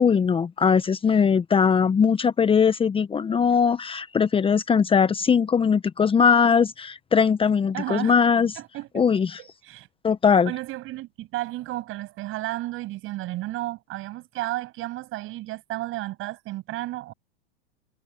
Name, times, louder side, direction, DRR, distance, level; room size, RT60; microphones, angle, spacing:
voice 1, 0.0-8.5 8.9-9.4 10.0-10.5, left 6 dB, 15° left, 1.3 m, -20 dB
voice 2, 7.7-8.2 8.6-9.0 9.4-9.9 10.5-17.1, right 17 dB, 40° right, 7.2 m, -33 dB
hypercardioid pair, 100°, 31 cm